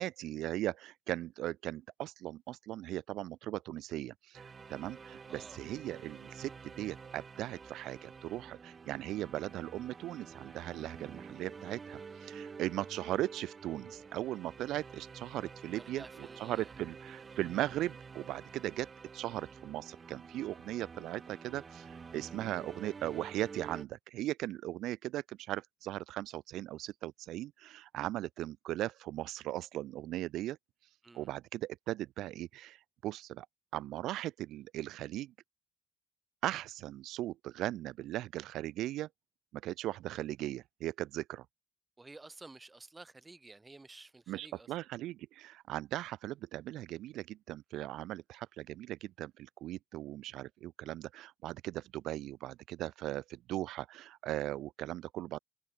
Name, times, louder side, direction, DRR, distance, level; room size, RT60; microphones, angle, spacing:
voice 1, 0.0-4.4 4.7-16.0 16.4-18.9 19.1-30.6 31.1-33.5 33.7-35.3 36.4-39.1 39.5-41.4 44.3-55.4, right 15 dB, 85° right, 0.7 m, -38 dB
sound 1, 4.3-23.9, right 5 dB, 40° right, 1.9 m, -49 dB
voice 2, 5.3-5.6 15.7-16.7 31.0-31.3 42.0-44.7, right 3 dB, 20° right, 6.3 m, -53 dB
cardioid pair, 90°, 0 cm